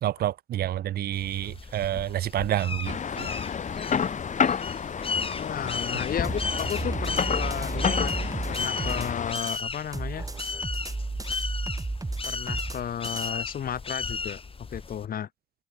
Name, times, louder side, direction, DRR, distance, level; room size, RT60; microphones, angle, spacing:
voice 1, 0.0-3.3, right 12 dB, 80° right, 2.0 m, -28 dB
sound 1, 1.1-15.1, left 4 dB, 35° left, 4.0 m, -35 dB
sound 2, 2.8-9.3, left 7 dB, 50° left, 2.8 m, -30 dB
voice 2, 5.3-8.1 8.5-10.3 12.2-15.3, left 9 dB, 65° left, 5.3 m, -34 dB
sound 3, 6.2-9.6 9.9-13.3, right 3 dB, 20° right, 4.6 m, -33 dB
cardioid pair, 75°, 16 cm